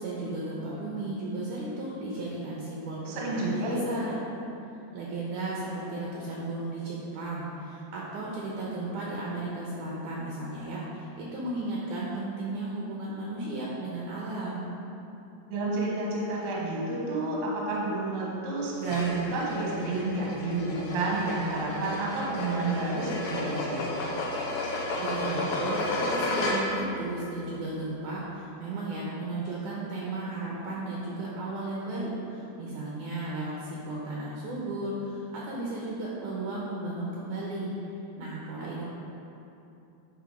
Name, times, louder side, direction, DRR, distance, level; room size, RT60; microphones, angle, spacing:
voice 1, 0.0-4.2 4.9-14.7 25.0-37.7 38.2-38.8, right 2 dB, 90° right, -5 dB, 1.8 m, -34 dB
voice 2, 3.1-3.8 15.5-23.9, right 2 dB, 70° right, -4 dB, 1.4 m, -30 dB
sound 1, 18.8-26.9, left 2 dB, 80° left, 2.8 m, -32 dB
10.0 x 3.8 x 4.9 m, 2.8 s
omnidirectional pair, 4.8 m